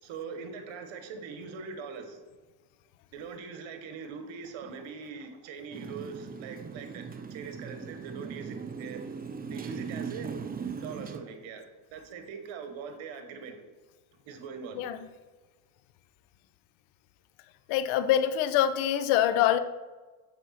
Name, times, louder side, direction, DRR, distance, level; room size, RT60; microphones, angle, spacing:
voice 1, 0.0-2.2 3.1-9.1 9.5-10.4 10.8-13.6 14.2-14.9, right 5 dB, 70° right, 7 dB, 1.3 m, -42 dB
Motorcycle, 5.7-11.2, right 6 dB, 20° right, 0.5 m, -39 dB
voice 2, 17.7-19.6, left 11 dB, 80° left, 12 dB, 0.7 m, -24 dB
6.9 x 4.5 x 5.7 m, 1.3 s
cardioid pair, 95°, 47 cm